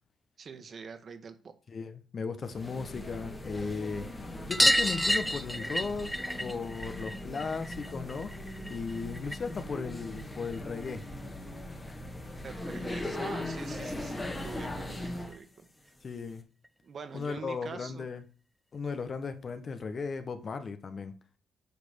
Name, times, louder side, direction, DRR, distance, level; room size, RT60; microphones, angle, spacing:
voice 1, 0.4-1.3 12.4-15.6 16.8-18.1, right 5 dB, 45° right, 1.4 m, -44 dB
voice 2, 1.7-8.3 8.7-11.0 16.0-16.4 17.1-18.2 18.7-21.1, left 5 dB, 45° left, 1.1 m, -36 dB
sound 1, 2.5-15.4, left 1 dB, 20° left, 1.6 m, -40 dB
sound 2, 4.5-9.6 9.9-11.0 12.4-12.5 12.7-12.8 13.1-13.2 14.5-14.6 14.9-15.0 15.3-15.4 16.6-16.7 17.5-17.6, equal, 5° left, 0.4 m, -31 dB
8.2 x 4.3 x 6.7 m
cardioid pair, 90°, 0 cm